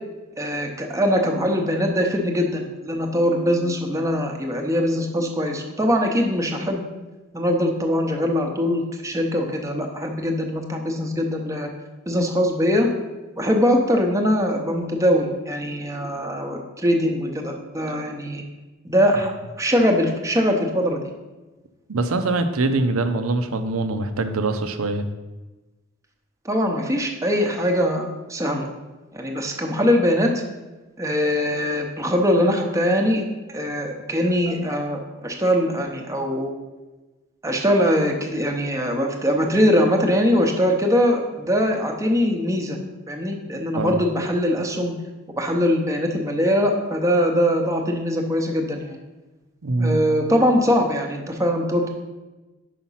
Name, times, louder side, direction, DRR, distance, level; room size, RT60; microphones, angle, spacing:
voice 1, 0.4-6.8 7.3-11.7 12.1-12.9 13.4-18.4 18.8-19.3 19.6-21.1 26.4-28.7 29.1-30.4 31.0-33.2 33.5-36.5 37.4-42.8 43.1-44.9 45.4-49.0 49.8-51.9, equal, 15° right, 2 dB, 0.8 m, -22 dB
voice 2, 21.9-25.0 43.8-44.0 49.6-50.0, right 2 dB, 85° right, 9 dB, 0.6 m, -23 dB
5.8 x 5.0 x 5.6 m, 1.2 s
head